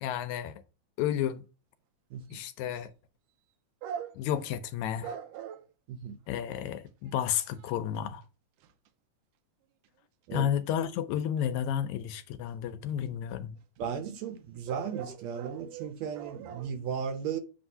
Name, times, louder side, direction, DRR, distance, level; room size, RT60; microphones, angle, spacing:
voice 1, 0.0-0.6 1.0-1.4 2.3-2.9 4.2-5.2 6.3-8.2 10.3-13.6, left 10 dB, 80° left, 1.9 m, -31 dB
sound 1, 2.3-2.4 3.8-4.4 5.0-5.7 6.6-6.7 7.1-7.2 7.5-8.0 8.6-8.9 12.5-12.6 12.9-13.0 14.4-14.5 14.7-16.7, right 8 dB, 90° right, 2.2 m, -41 dB
voice 2, 13.8-17.4, right 7 dB, 70° right, 1.9 m, -36 dB
7.9 x 3.6 x 5.4 m
omnidirectional pair, 3.5 m